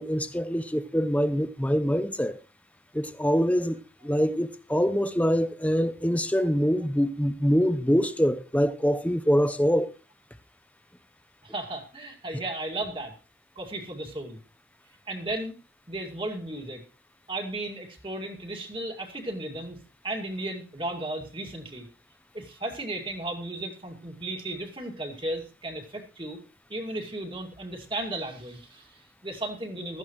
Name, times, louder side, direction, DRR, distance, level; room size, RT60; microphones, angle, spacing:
voice 1, 0.0-2.4 2.9-9.9, equal, 10° left, 0.7 m, -24 dB
voice 2, 11.4-13.1 13.6-14.4 15.1-15.5 15.9-16.8 17.3-19.8 20.0-21.9 22.3-26.4 26.7-30.0, right 1 dB, 30° right, 2.2 m, -35 dB
15.5 x 13.5 x 3.1 m
head